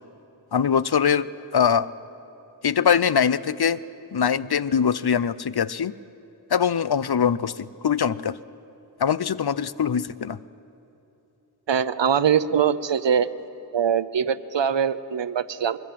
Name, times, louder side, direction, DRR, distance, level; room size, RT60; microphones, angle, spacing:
voice 1, 0.5-1.9 2.6-3.8 4.1-5.9 6.5-8.4 9.0-10.4, left 7 dB, 60° left, 17 dB, 0.6 m, -22 dB
voice 2, 11.7-13.3 13.7-15.8, right 8 dB, 85° right, 15 dB, 0.8 m, -22 dB
23.5 x 23.0 x 7.5 m, 2.9 s
wide cardioid pair, 70°, 43 cm